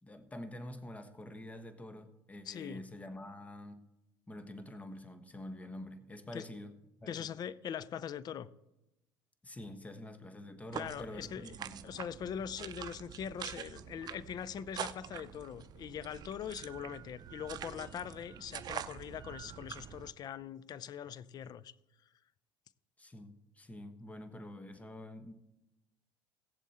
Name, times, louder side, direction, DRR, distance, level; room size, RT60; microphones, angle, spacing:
voice 1, 0.0-3.8 4.3-7.3 9.4-11.8 23.0-25.3, left 1 dB, 15° left, 9 dB, 1.3 m, -47 dB
voice 2, 2.5-2.8 6.3-6.4 7.1-8.5 10.7-11.6 11.8-21.7, left 8 dB, 50° left, 20 dB, 0.5 m, -42 dB
sound 1, 10.7-20.1, right 10 dB, 50° right, 0.6 m, -45 dB
17.0 x 7.3 x 4.3 m, 0.93 s
supercardioid pair, 85°, 9 cm